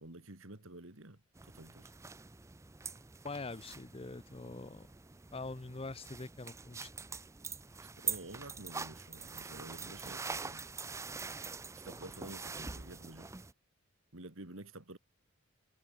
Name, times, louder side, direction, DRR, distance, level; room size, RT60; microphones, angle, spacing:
voice 1, 0.0-1.9 7.8-10.7 11.8-13.3 14.1-15.0, right 2 dB, 65° right, 2.5 m, -50 dB
sound 1, 1.3-13.5, right 5 dB, 15° right, 0.5 m, -44 dB
voice 2, 3.2-4.9 5.3-6.9, left 3 dB, 25° left, 0.7 m, -44 dB
head